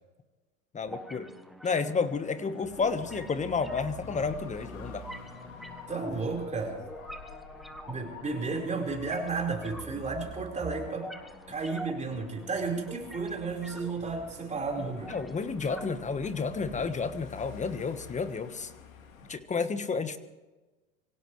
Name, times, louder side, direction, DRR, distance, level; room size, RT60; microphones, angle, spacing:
voice 1, 0.7-1.3 1.6-5.0 15.1-18.7 19.3-20.2, left 5 dB, 20° left, 11 dB, 1.4 m, -31 dB
sound 1, 0.9-16.9, right 1 dB, ahead, 1.3 m, -46 dB
Dog / Motorcycle, 2.6-19.4, left 6 dB, 85° left, 2.7 m, -49 dB
voice 2, 5.9-6.8 7.9-11.2 11.5-15.1, right 4 dB, 15° right, 0 dB, 4.8 m, -33 dB
25.0 x 17.0 x 3.3 m, 1.2 s
hypercardioid pair, 100°, 40 cm